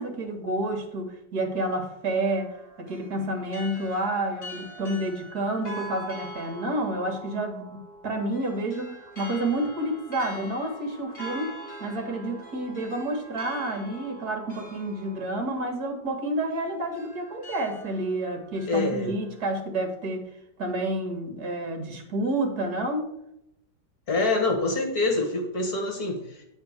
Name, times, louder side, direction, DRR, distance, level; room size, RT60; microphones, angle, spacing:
voice 1, 0.0-20.3 20.6-23.1, right 1 dB, 60° right, 3 dB, 2.2 m, -29 dB
sound 1, 2.2-19.5, right 1 dB, 35° left, 2.2 m, -43 dB
voice 2, 18.7-19.1 24.1-26.4, left 2 dB, 60° left, 2 dB, 2.0 m, -26 dB
9.4 x 4.3 x 6.5 m, 0.80 s
omnidirectional pair, 1.9 m